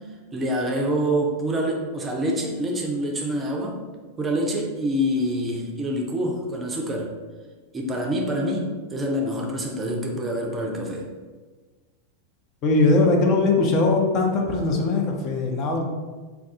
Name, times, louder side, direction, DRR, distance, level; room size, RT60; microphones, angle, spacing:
voice 1, 0.3-3.8 4.2-7.1 7.7-11.0, equal, 20° right, 0 dB, 0.4 m, -26 dB
voice 2, 12.6-15.8, left 3 dB, 35° left, 1 dB, 0.5 m, -20 dB
2.3 x 2.3 x 3.6 m, 1.3 s
figure-of-eight pair, 90°, 0 cm